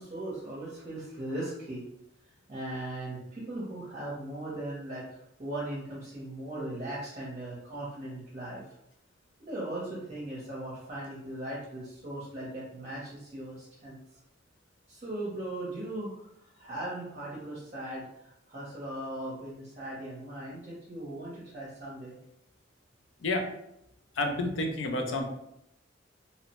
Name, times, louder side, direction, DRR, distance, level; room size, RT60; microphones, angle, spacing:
voice 1, 0.0-1.8 2.5-5.0 5.4-8.7 9.5-14.2 14.9-22.2, right 1 dB, 35° right, -6 dB, 0.7 m, -38 dB
voice 2, 24.2-25.3, left 2 dB, 80° left, 3 dB, 0.5 m, -29 dB
2.9 x 2.0 x 2.9 m, 0.80 s
head